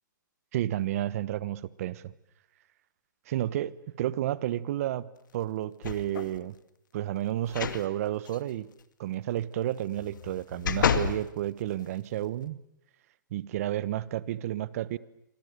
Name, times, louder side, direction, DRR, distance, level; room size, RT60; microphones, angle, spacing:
voice 1, 0.5-2.1 3.3-6.5 6.9-8.7 9.0-12.6 13.3-15.0, right 13 dB, 45° right, 19 dB, 1.2 m, -31 dB
sound 1, 5.8-6.4 7.5-7.8 8.3-8.4 10.0-11.2 11.8-11.9, left 7 dB, 70° left, 2.2 m, -29 dB
29.0 x 25.5 x 6.8 m, 0.78 s
hypercardioid pair, 145°, 11 cm